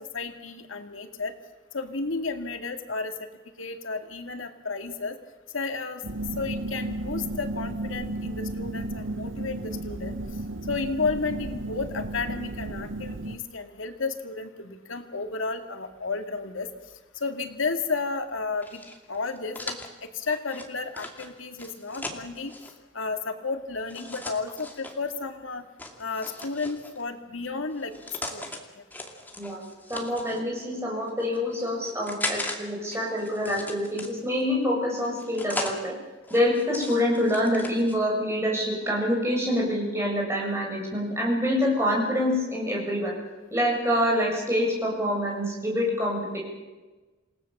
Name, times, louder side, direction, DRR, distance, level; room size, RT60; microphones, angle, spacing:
voice 1, 0.1-1.3 1.7-3.1 3.6-5.2 5.5-6.0 6.4-10.2 10.7-16.7 17.2-18.8 19.1-19.8 20.1-22.5 22.9-25.6 26.0-27.9 28.3-28.4, left 4 dB, 85° left, 6 dB, 2.2 m, -32 dB
sound 1, 6.0-13.4, right 1 dB, 75° right, 1.0 m, -34 dB
sound 2, 18.6-22.7 23.9-25.0 25.8-27.0 27.7-28.6 28.9-30.4 31.1-32.6 32.9-34.4 35.0-35.8 36.2-38.0, left 2 dB, 10° left, 2.4 m, -38 dB
voice 2, 29.9-35.9 36.3-43.1 43.5-46.4, equal, 15° right, -2 dB, 7.6 m, -26 dB
28.5 x 18.0 x 7.3 m, 1.2 s
head